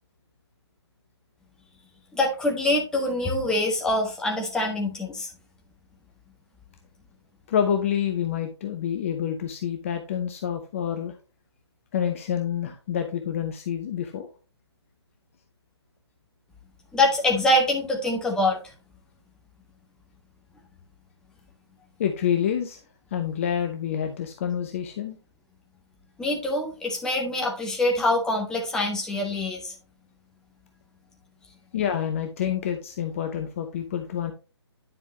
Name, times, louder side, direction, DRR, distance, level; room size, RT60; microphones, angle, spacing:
voice 1, 2.1-5.3 16.9-18.6 26.2-29.7, left 1 dB, 5° left, 0 dB, 1.3 m, -24 dB
voice 2, 7.5-11.2 11.9-14.3 22.0-22.8 23.1-25.2 31.7-34.3, left 9 dB, 30° left, 5 dB, 0.8 m, -27 dB
9.9 x 5.4 x 3.0 m, 0.32 s
figure-of-eight pair, 140°, 14 cm